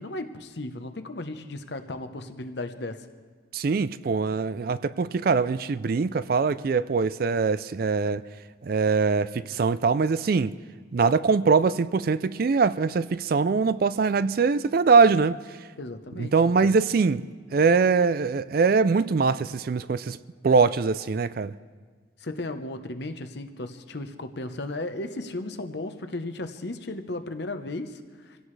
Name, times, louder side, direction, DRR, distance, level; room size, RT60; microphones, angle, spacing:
voice 1, 0.0-3.0 15.8-16.3 16.6-16.8 22.2-28.4, left 2 dB, 60° left, 0.9 m, -35 dB
voice 2, 3.5-8.2 8.6-10.5 10.9-15.4 16.2-17.3 17.5-20.2 20.4-21.5, right 4 dB, 50° right, 0.3 m, -22 dB
26.0 x 16.5 x 3.3 m
head